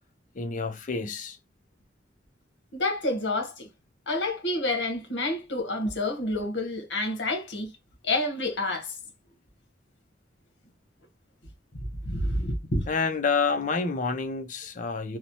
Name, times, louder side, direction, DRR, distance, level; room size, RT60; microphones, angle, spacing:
voice 1, 0.3-1.4 12.9-15.2, left 4 dB, 45° left, 0.5 m, -28 dB
voice 2, 2.7-3.7 4.1-7.7 8.0-8.9 12.1-12.8, left 2 dB, 70° left, 1.0 m, -28 dB
3.0 x 2.0 x 2.6 m
head